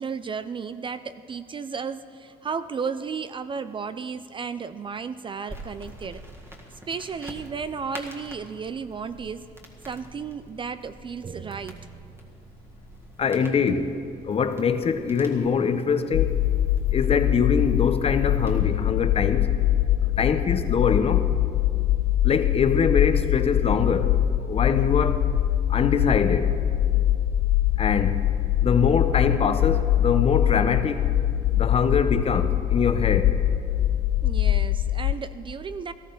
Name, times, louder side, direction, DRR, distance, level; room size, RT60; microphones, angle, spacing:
voice 1, 0.0-6.2 6.7-9.5 9.8-12.3 34.2-35.9, right 5 dB, 30° right, 0.4 m, -34 dB
sound 1, 5.5-18.6, equal, 15° right, 1.8 m, -46 dB
voice 2, 13.2-14.0 14.2-16.4 16.9-19.5 20.2-21.3 22.2-24.2 24.4-25.3 25.7-26.6 27.8-28.3 28.6-31.1 31.5-33.4, left 6 dB, 35° left, 0.8 m, -23 dB
sound 2, 16.1-35.1, left 12 dB, 60° left, 0.4 m, -23 dB
18.5 x 13.5 x 3.9 m
cardioid pair, 110°, 17 cm